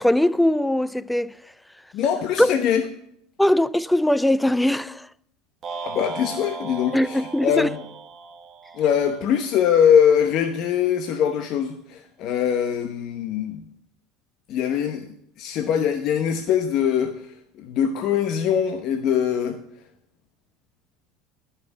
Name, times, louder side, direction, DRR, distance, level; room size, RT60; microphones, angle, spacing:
voice 1, 0.0-1.3 2.4-2.5 3.4-5.1 6.9-7.7, left 1 dB, 5° left, 0.4 m, -20 dB
voice 2, 1.9-2.8 5.8-7.8 8.7-13.6 14.5-15.1 15.4-17.3 17.6-19.6, left 8 dB, 55° left, 0.9 m, -22 dB
sound 1, 5.6-9.9, right 4 dB, 40° right, 1.1 m, -37 dB
11.5 x 5.8 x 7.0 m
hypercardioid pair, 85°, 0 cm